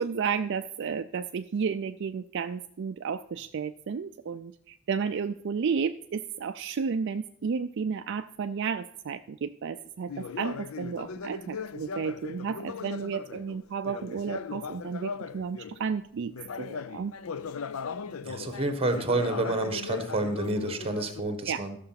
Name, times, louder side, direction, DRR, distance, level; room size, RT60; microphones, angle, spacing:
voice 1, 0.0-16.3 16.6-17.1 21.5-21.6, right 6 dB, 55° right, 8 dB, 0.4 m, -32 dB
Conversation, 10.1-15.8 16.3-21.2, left 5 dB, 70° left, 0.5 m, -38 dB
voice 2, 18.2-21.8, right 2 dB, 25° right, 8 dB, 1.3 m, -29 dB
12.5 x 6.7 x 5.7 m, 0.70 s
head